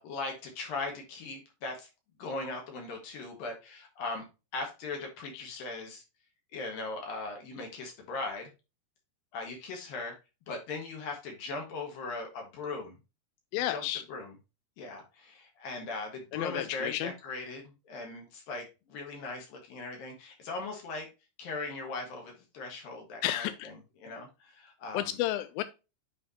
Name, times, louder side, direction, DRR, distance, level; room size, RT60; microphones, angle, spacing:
voice 1, 0.0-1.9 2.2-4.2 4.5-6.0 6.5-8.5 9.3-10.2 10.5-12.9 13.7-14.3 14.8-21.1 21.4-23.7 24.0-25.1, left 3 dB, 65° left, 3.2 m, -39 dB
voice 2, 5.3-5.7 13.5-14.0 16.3-17.1 23.2-23.7 24.9-25.6, left 13 dB, 85° left, 2.1 m, -32 dB
9.5 x 4.6 x 2.8 m
omnidirectional pair, 4.7 m